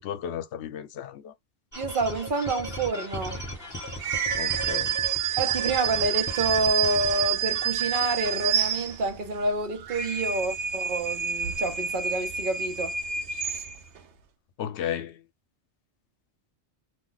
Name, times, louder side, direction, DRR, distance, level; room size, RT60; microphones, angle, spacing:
voice 1, 0.0-1.3 4.4-5.0 5.3-5.4 14.6-15.2, left 9 dB, 80° left, 0.9 m, -34 dB
sound 1, 1.7-9.1, equal, 15° left, 1.2 m, -38 dB
voice 2, 1.8-3.5 5.4-13.0 13.5-13.6, right 2 dB, 55° right, 0.8 m, -28 dB
sound 2, 4.0-9.3 9.7-14.0, right 8 dB, 85° right, 0.9 m, -28 dB
2.4 x 2.2 x 3.7 m
omnidirectional pair, 1.2 m